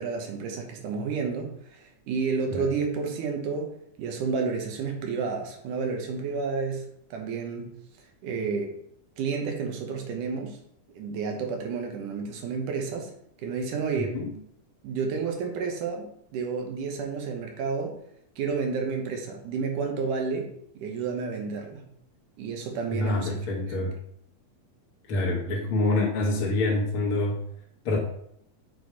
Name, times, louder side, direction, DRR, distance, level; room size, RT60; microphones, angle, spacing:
voice 1, 0.0-7.7 8.2-8.8 9.2-10.6 10.9-13.1 13.4-14.2 14.8-18.0 18.4-21.8 22.4-23.4 23.6-23.9, right 5 dB, 90° right, 3 dB, 2.6 m, -31 dB
voice 2, 14.0-14.3 22.9-23.9 25.1-27.4 27.8-28.0, left 2 dB, 60° left, -3 dB, 1.5 m, -26 dB
6.6 x 4.2 x 4.7 m, 0.71 s
omnidirectional pair, 3.6 m